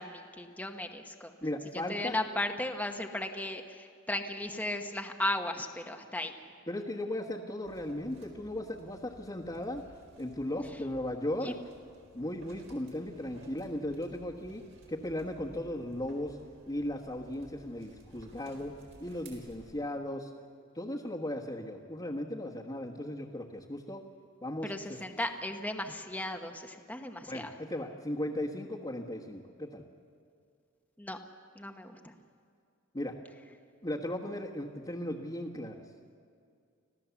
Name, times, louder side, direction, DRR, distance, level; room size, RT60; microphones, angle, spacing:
voice 1, 0.0-1.3 1.9-6.3 11.4-11.5 24.6-27.5 31.0-31.2 31.5-32.1, left 1 dB, 10° left, 4 dB, 1.1 m, -36 dB
voice 2, 1.4-2.1 6.7-9.8 10.2-11.5 12.1-14.6 14.9-16.4 16.7-18.7 19.0-20.3 20.7-24.0 24.4-25.0 27.3-29.8 32.9-33.1 33.8-35.7, left 1 dB, 25° left, -5 dB, 1.4 m, -36 dB
sound 1, 7.6-19.7, right 1 dB, 70° right, 4.5 m, -56 dB
26.0 x 16.0 x 7.1 m, 2.3 s
head